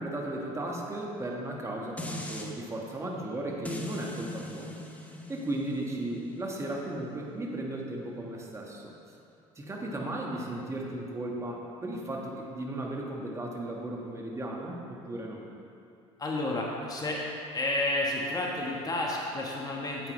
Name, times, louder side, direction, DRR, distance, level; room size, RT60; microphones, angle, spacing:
voice 1, 0.0-4.7 5.3-8.9 9.5-15.4, right 1 dB, 20° right, -1 dB, 1.5 m, -35 dB
sound 1, 2.0-2.5 3.6-8.8 9.2-9.3, left 1 dB, 10° left, 0.9 m, -42 dB
voice 2, 16.2-17.2 17.5-20.1, left 2 dB, 25° left, -2 dB, 1.3 m, -31 dB
9.0 x 8.1 x 3.2 m, 2.6 s
supercardioid pair, 80°, 14 cm